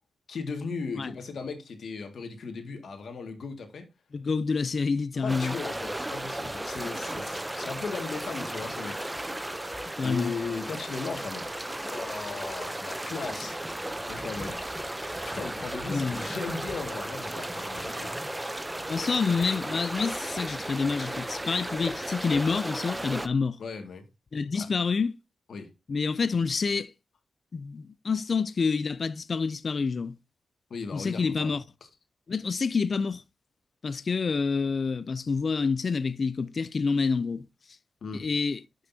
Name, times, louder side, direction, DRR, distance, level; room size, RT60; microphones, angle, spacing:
voice 1, 0.3-3.9 5.2-9.5 10.0-11.5 11.8-13.8 14.1-14.6 15.2-18.1 23.6-24.0 24.5-24.7 25.5-25.7 30.7-31.6 38.0-38.3, left 4 dB, 70° left, 2.0 m, -37 dB
voice 2, 4.1-5.5 10.0-10.3 15.9-16.2 18.9-23.6 24.3-25.2 25.9-26.9 27.5-30.2 30.9-31.6 32.3-33.2 33.8-37.4 38.1-38.6, left 5 dB, 50° left, 0.4 m, -28 dB
sound 1, 5.3-23.3, right 1 dB, 10° right, 0.6 m, -35 dB
12.0 x 6.4 x 2.7 m
wide cardioid pair, 105°, 0 cm